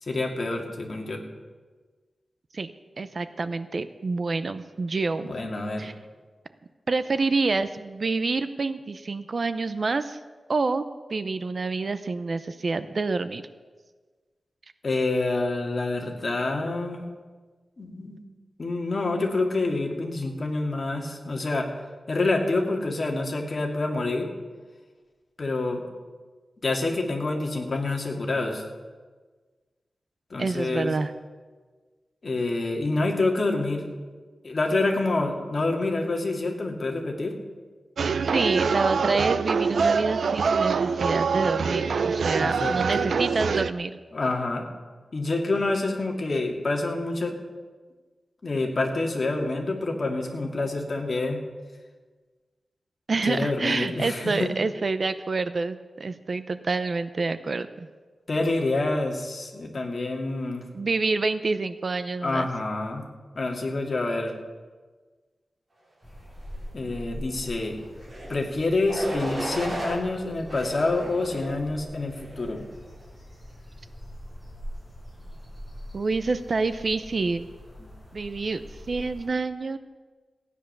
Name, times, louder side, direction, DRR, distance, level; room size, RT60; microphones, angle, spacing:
voice 1, 0.0-1.2 5.2-5.9 14.8-17.0 17.8-18.2 18.6-21.7 22.1-24.3 25.4-25.8 26.6-28.6 30.3-31.0 32.2-33.9 34.4-37.3 42.4-43.2 44.1-44.7 45.1-47.3 48.4-51.4 53.2-54.5 58.3-60.6 62.2-63.1 63.4-64.3 66.7-67.8 68.3-72.7 77.8-77.9, left 2 dB, 45° left, 1 dB, 2.2 m, -27 dB
voice 2, 3.0-5.3 5.8-5.9 6.9-10.2 10.5-10.8 11.1-13.4 30.4-31.1 38.3-44.0 53.1-57.9 60.7-62.5 75.9-77.5 78.1-79.8, right 3 dB, 50° right, 12 dB, 0.6 m, -27 dB
sound 1, 38.0-43.7, right 5 dB, 90° right, 0.5 m, -24 dB
sound 2, 66.0-79.3, equal, ahead, 5.4 m, -43 dB
sound 3, 68.0-68.3 68.9-70.0 70.5-71.5 72.1-72.5, right 1 dB, 30° right, 5.2 m, -34 dB
16.0 x 10.0 x 6.7 m, 1.4 s
wide cardioid pair, 140°, 0 cm